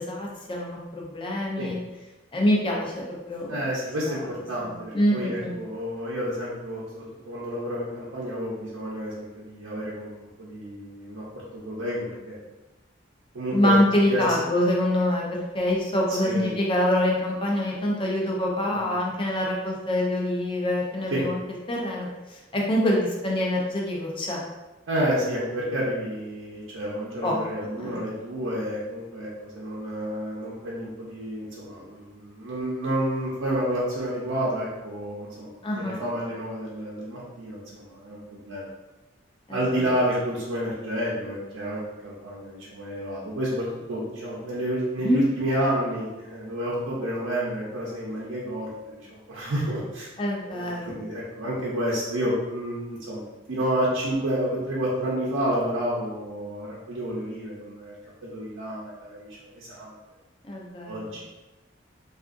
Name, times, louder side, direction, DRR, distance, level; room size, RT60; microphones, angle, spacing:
voice 1, 0.0-1.8 2.3-3.7 4.1-4.2 4.6-5.5 13.5-21.4 21.7-22.1 22.5-24.4 27.2-27.3 27.8-28.0 35.6-36.0 39.5-39.8 45.0-45.2 50.2-51.0 60.4-61.1, left 1 dB, 25° left, -2 dB, 0.5 m, -25 dB
voice 2, 3.5-11.2 11.5-12.3 13.3-13.7 14.1-14.2 16.1-16.5 18.6-18.9 21.1-21.2 24.9-38.7 39.5-50.1 50.4-53.2 53.5-57.9 58.2-59.9 60.8-61.3, equal, 90° right, -6 dB, 0.6 m, -30 dB
3.5 x 2.4 x 2.5 m, 1.1 s
head